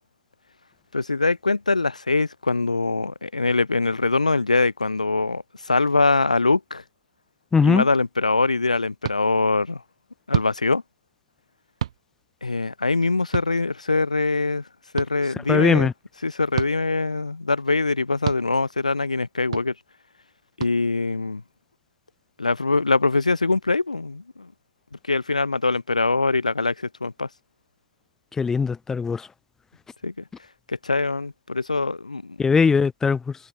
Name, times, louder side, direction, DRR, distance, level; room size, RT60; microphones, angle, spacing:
voice 1, 0.9-6.8 7.6-9.8 10.3-10.8 12.4-14.6 14.9-15.9 16.2-19.7 20.6-21.4 22.4-24.5 25.1-27.3 30.0-30.1 30.7-32.4, left 3 dB, 80° left, 0.6 m, -23 dB
voice 2, 7.5-7.8 15.5-15.9 28.4-29.3 32.4-33.3, left 5 dB, 10° left, 0.5 m, -20 dB
sound 1, 9.0-9.2 10.3-10.5 11.8-12.0 13.3-13.5 15.0-15.1 16.5-16.7 18.2-18.4 19.5-19.7 20.6-20.7, right 10 dB, 60° right, 1.7 m, -27 dB
figure-of-eight pair, 100°, 4 cm